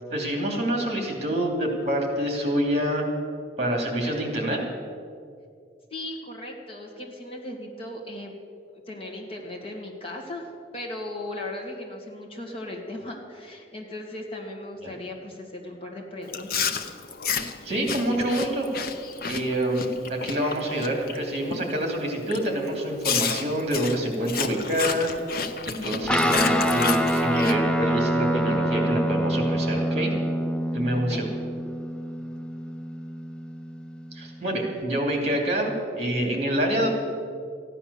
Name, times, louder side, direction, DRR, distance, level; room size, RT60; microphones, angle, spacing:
voice 1, 0.1-3.0 3.6-4.6 14.8-14.9 17.6-18.7 19.3-25.1 25.7-30.1 30.7-31.3 34.1-36.9, right 1 dB, 40° right, 2 dB, 2.7 m, -26 dB
voice 2, 5.9-8.3 8.9-16.8 30.9-31.2, left 1 dB, 30° left, 0 dB, 2.2 m, -37 dB
Chewing mastication, 16.3-21.2 21.5-21.8 22.3-22.4 23.0-27.5, left 6 dB, 55° left, 0.8 m, -30 dB
Guitar, 26.1-34.8, equal, 5° left, 0.6 m, -26 dB
14.5 x 10.0 x 6.9 m, 2.3 s
head